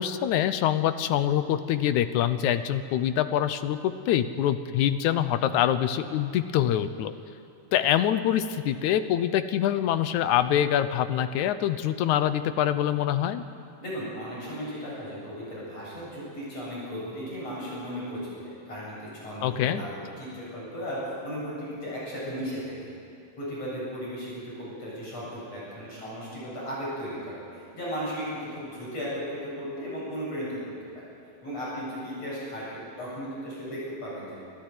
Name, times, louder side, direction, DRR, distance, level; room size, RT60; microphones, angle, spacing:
voice 1, 0.0-7.1 7.7-13.4 19.4-19.8, left 10 dB, 75° left, 11 dB, 1.9 m, -25 dB
voice 2, 13.8-18.2 18.7-22.9 23.4-30.5 31.4-34.5, equal, 45° left, -6 dB, 9.3 m, -36 dB
27.0 x 13.5 x 9.5 m, 2.5 s
omnidirectional pair, 4.0 m